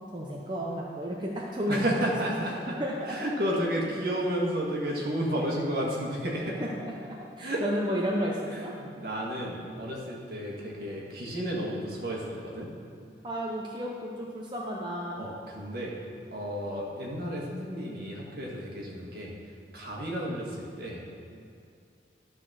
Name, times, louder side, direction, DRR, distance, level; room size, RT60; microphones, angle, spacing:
voice 1, 0.1-2.0 2.4-2.5 2.8-3.2 6.6-8.7 13.2-15.3, equal, 25° right, -3 dB, 0.7 m, -32 dB
voice 2, 1.7-2.8 3.0-6.6 7.4-7.6 8.5-12.7 15.2-15.9 16.3-19.4 19.7-21.0, equal, 60° right, -3 dB, 1.7 m, -32 dB
12.0 x 4.0 x 6.3 m, 2.4 s
head